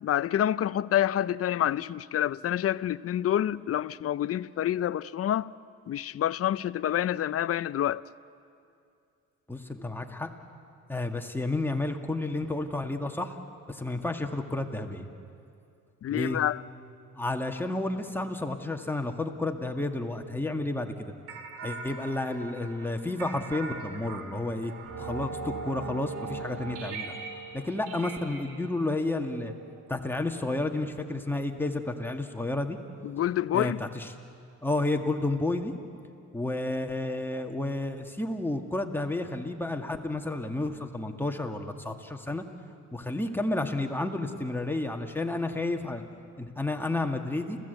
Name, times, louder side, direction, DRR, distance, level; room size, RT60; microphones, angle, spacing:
voice 1, 0.0-5.5 5.9-8.0 16.0-16.6 33.0-33.8, left 11 dB, 50° left, 0.6 m, -27 dB
voice 2, 9.5-10.3 10.9-13.4 13.7-15.1 16.1-16.4 17.2-21.1 21.6-24.7 25.0-27.2 27.5-29.5 29.9-32.8 33.5-34.1 34.6-35.7 36.3-42.5 42.9-46.0 46.4-47.6, left 2 dB, 5° left, 1.9 m, -31 dB
sound 1, 21.3-30.2, right 4 dB, 85° right, 2.4 m, -40 dB
30.0 x 16.0 x 8.1 m
cardioid pair, 90°, 30 cm